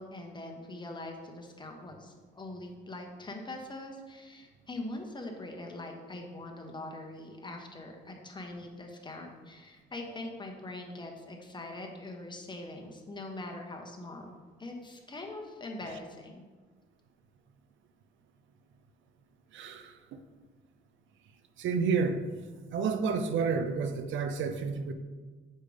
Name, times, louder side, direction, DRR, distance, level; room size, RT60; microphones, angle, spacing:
voice 1, 0.0-14.3 14.6-16.4, left 2 dB, 25° left, 2 dB, 1.0 m, -42 dB
voice 2, 19.5-19.9 21.6-22.2 22.7-24.9, right 5 dB, 75° right, 8 dB, 0.6 m, -30 dB
6.5 x 5.1 x 3.4 m, 1.4 s
cardioid pair, 90°, 20 cm